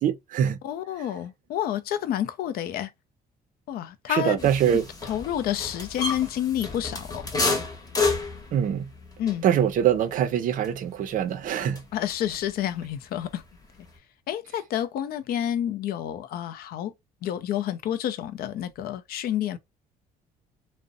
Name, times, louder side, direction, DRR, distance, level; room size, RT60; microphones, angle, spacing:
voice 1, 0.0-0.6 4.1-4.8 8.5-8.9 9.4-11.8, right 9 dB, 55° right, 0.4 m, -23 dB
voice 2, 0.6-2.9 3.7-7.3 9.2-9.5 11.9-13.4 14.3-16.9 17.2-19.6, left 11 dB, 65° left, 0.4 m, -29 dB
sound 1, 4.4-12.5 12.8-14.0, left 3 dB, 20° left, 0.8 m, -32 dB
2.5 x 2.0 x 2.5 m
cardioid pair, 110°, 17 cm